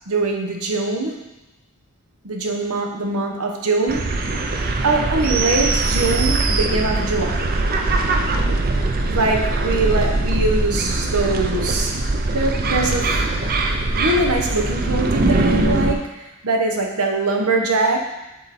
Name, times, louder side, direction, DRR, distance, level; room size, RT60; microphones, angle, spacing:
voice 1, 0.1-1.2 2.2-4.2 4.8-7.5 9.1-12.0 12.3-13.2 14.0-18.0, right 2 dB, 80° right, 2 dB, 1.0 m, -22 dB
sound 1, 3.9-15.9, right 2 dB, 40° right, 0.5 m, -21 dB
7.5 x 4.0 x 4.2 m, 1.0 s
head